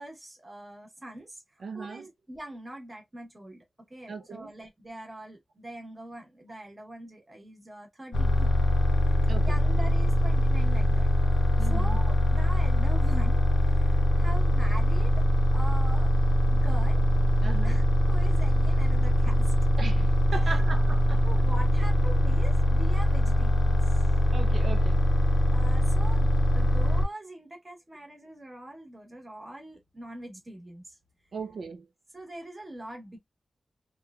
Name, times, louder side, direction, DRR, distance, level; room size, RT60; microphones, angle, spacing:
voice 1, 0.0-8.5 8.8-11.1 11.6-15.3 15.5-16.1 16.4-17.0 17.6-19.5 21.2-24.0 25.5-31.0 32.1-33.2, right 1 dB, 20° right, 1.0 m, -43 dB
voice 2, 1.6-2.1 4.1-4.5 9.3-9.6 11.6-12.0 17.4-17.8 19.8-21.3 24.3-25.1 31.3-31.9, right 4 dB, 70° right, 0.4 m, -38 dB
sound 1, 8.1-27.0, equal, 65° left, 0.5 m, -23 dB
3.0 x 2.2 x 2.3 m
wide cardioid pair, 150°, 0 cm